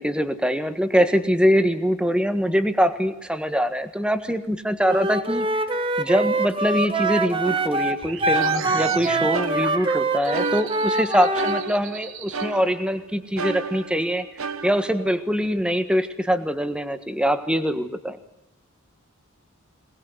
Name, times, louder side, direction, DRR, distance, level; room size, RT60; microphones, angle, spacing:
voice 1, 0.0-5.5 6.0-14.2 14.6-18.2, equal, 5° right, 9 dB, 1.6 m, -23 dB
Wind instrument woodwind instrument, 4.8-11.6, right 2 dB, 25° right, 1.5 m, -24 dB
sound 1, 7.4-9.0 9.3-11.0 11.3-13.0 13.4-15.5, right 4 dB, 90° right, 1.3 m, -33 dB
sound 2, 8.0-12.4, right 6 dB, 70° right, 1.5 m, -36 dB
22.5 x 19.5 x 8.1 m, 0.91 s
head